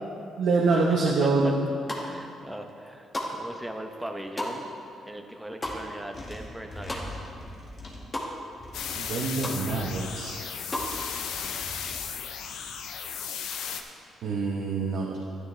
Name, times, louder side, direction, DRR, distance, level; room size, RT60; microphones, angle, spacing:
voice 1, 0.4-1.5 9.0-10.4 14.2-15.2, right 3 dB, 75° right, -2 dB, 1.1 m, -25 dB
voice 2, 1.2-1.5 2.0-4.7 5.1-7.3, right 1 dB, 10° right, 4 dB, 0.9 m, -39 dB
sound 1, 1.7-2.3 2.7-7.5 7.7-8.3 8.7-8.8 9.0-9.6 10.0-10.9, left 1 dB, 20° left, 1.9 m, -36 dB
sound 2, 5.6-5.7 6.1-8.0 8.6-9.1 9.6-10.2 10.7-12.0, left 1 dB, 45° left, 2.3 m, -42 dB
sound 3, 8.7-13.8, left 7 dB, 85° left, 0.7 m, -35 dB
13.0 x 10.0 x 3.4 m, 2.6 s
cardioid pair, 90°, 0 cm